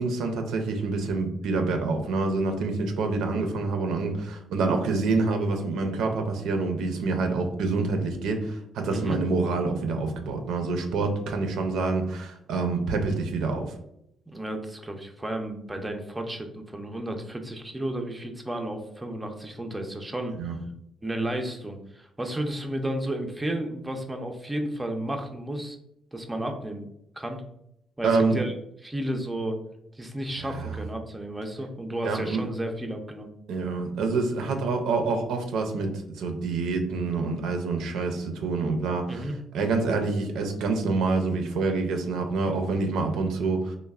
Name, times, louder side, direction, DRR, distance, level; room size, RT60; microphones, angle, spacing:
voice 1, 0.0-13.7 20.4-20.6 28.0-28.4 30.4-30.7 32.0-32.4 33.5-43.8, right 3 dB, 85° right, 5 dB, 0.4 m, -27 dB
voice 2, 14.3-20.4 21.0-25.8 26.1-26.9 27.2-27.4 28.0-28.6 28.8-29.6 30.0-33.3 39.1-39.4, right 1 dB, 15° right, 4 dB, 0.4 m, -32 dB
3.1 x 2.0 x 2.3 m, 0.77 s
cardioid pair, 90°, 0 cm